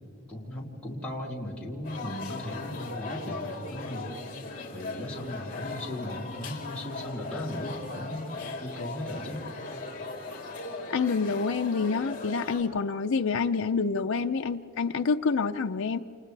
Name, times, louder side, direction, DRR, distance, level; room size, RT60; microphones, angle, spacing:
voice 1, 0.3-4.1 4.7-9.4, left 1 dB, 5° left, -6 dB, 3.2 m, -37 dB
sound 1, 1.8-12.6, left 3 dB, 40° left, 3.5 m, -38 dB
voice 2, 10.9-16.0, left 5 dB, 75° left, 4 dB, 0.5 m, -27 dB
29.0 x 29.0 x 3.4 m, 2.7 s
head